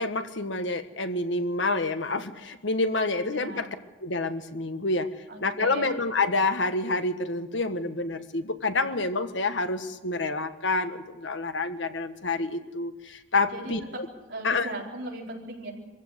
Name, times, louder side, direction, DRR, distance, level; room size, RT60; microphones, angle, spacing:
voice 1, 0.0-3.7 4.0-5.1 5.4-14.1 14.4-14.7, left 3 dB, 85° left, 8 dB, 1.5 m, -28 dB
voice 2, 3.3-3.7 5.3-6.0 13.5-14.0 14.3-15.7, right 1 dB, 65° right, -2 dB, 4.4 m, -37 dB
24.0 x 15.5 x 8.1 m, 1.1 s
head